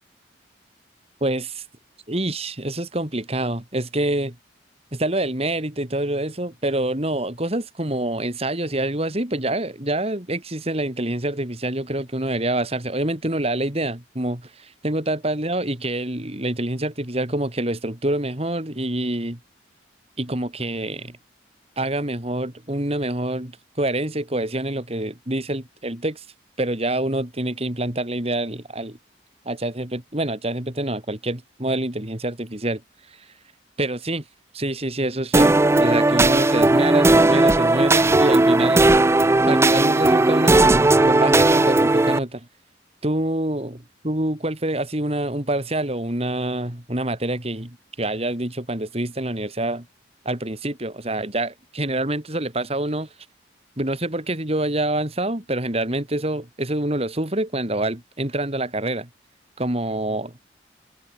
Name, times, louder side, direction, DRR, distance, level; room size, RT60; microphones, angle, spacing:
voice 1, 1.2-1.6 2.1-4.4 4.9-19.4 20.2-21.2 21.8-26.2 26.6-29.0 29.4-32.8 33.8-34.2 34.5-38.9 39.5-42.5 43.0-49.9 50.2-53.1 53.8-59.1 59.6-60.5, right 1 dB, 35° right, 3.0 m, -26 dB
sound 1, 35.3-42.2, right 2 dB, 15° right, 0.4 m, -16 dB
head